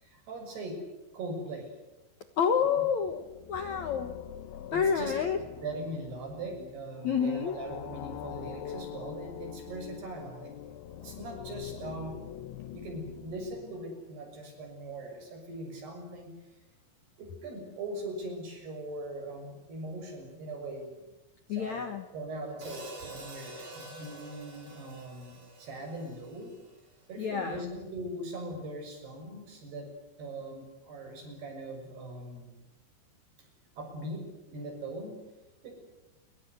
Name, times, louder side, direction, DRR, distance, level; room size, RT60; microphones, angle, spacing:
voice 1, 0.0-0.8 1.1-1.7 2.6-2.8 4.7-10.5 11.0-12.2 12.7-16.3 17.2-20.9 21.5-21.8 22.1-26.5 27.1-29.9 30.2-32.5 33.4-33.5 33.7-35.2 35.6-35.7, right 1 dB, 65° right, 4 dB, 8.4 m, -40 dB
voice 2, 2.4-4.1 4.7-5.4 7.0-7.6 21.5-22.1 27.2-27.6, left 7 dB, 60° left, 8 dB, 1.9 m, -29 dB
sound 1, 3.0-14.2, left 10 dB, 90° left, 3.7 m, -44 dB
Hi-hat, 22.6-26.9, right 2 dB, 40° right, 6.9 m, -47 dB
28.0 x 24.5 x 8.1 m, 1.0 s
omnidirectional pair, 5.1 m